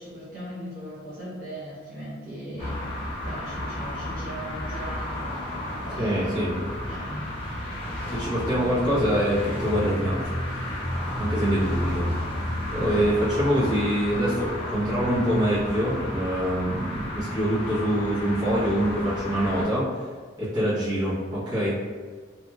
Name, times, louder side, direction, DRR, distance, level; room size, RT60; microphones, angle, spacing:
voice 1, 0.0-5.5 5.8-7.3 11.5-12.1 12.9-13.1, equal, 45° right, -10 dB, 1.0 m, -39 dB
sound 1, 2.6-19.6, left 1 dB, 30° left, 0.6 m, -32 dB
voice 2, 6.0-6.6 8.0-10.8 11.2-12.0 12.7-20.0 20.4-21.8, equal, 20° right, -12 dB, 1.0 m, -25 dB
2.9 x 2.6 x 2.3 m, 1.5 s
head